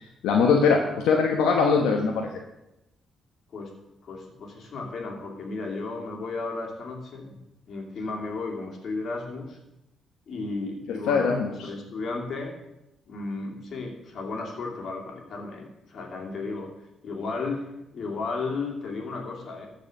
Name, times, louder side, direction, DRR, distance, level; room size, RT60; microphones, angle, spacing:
voice 1, 0.2-2.3 11.1-11.7, left 5 dB, 90° left, 1 dB, 1.2 m, -21 dB
voice 2, 4.0-7.4 7.7-9.6 10.3-11.3 11.6-12.5 13.1-16.7 17.0-17.6 17.9-19.7, left 3 dB, 60° left, 0 dB, 2.7 m, -34 dB
14.0 x 4.9 x 6.6 m, 0.91 s
cardioid pair, 90°, 0 cm